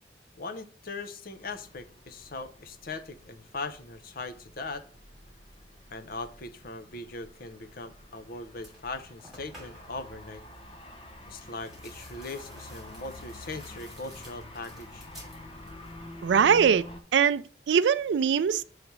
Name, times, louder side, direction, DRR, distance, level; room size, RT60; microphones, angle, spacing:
voice 1, 0.4-4.9 5.9-10.4 11.3-15.1, left 3 dB, 55° left, 0.7 m, -40 dB
sound 1, 1.3-17.0, left 1 dB, 30° left, 1.0 m, -48 dB
sound 2, 8.1-8.2 8.6-10.0 11.4-16.0 16.3-16.9, equal, ahead, 2.6 m, -52 dB
voice 2, 16.2-16.8 17.1-18.6, right 7 dB, 75° right, 0.3 m, -22 dB
6.8 x 3.2 x 5.9 m
head